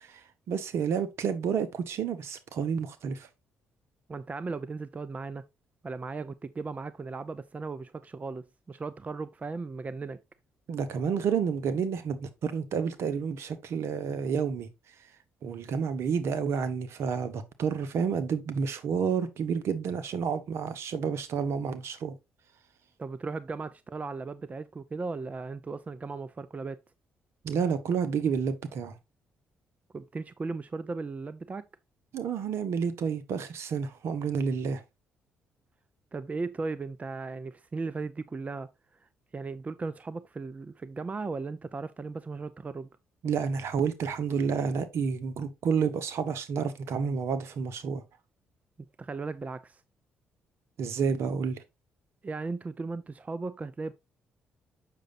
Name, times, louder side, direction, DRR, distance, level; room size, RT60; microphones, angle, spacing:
voice 1, 0.0-3.3 10.7-14.7 15.4-22.2 27.4-29.0 32.1-34.8 43.2-48.0 50.8-51.6, right 6 dB, 65° right, 1.2 m, -30 dB
voice 2, 4.1-5.5 5.8-10.2 23.0-26.8 29.9-31.7 36.1-38.7 39.0-43.0 48.8-49.8 52.2-53.9, right 4 dB, 30° right, 0.6 m, -37 dB
7.5 x 6.4 x 2.6 m
supercardioid pair, 55°, 5 cm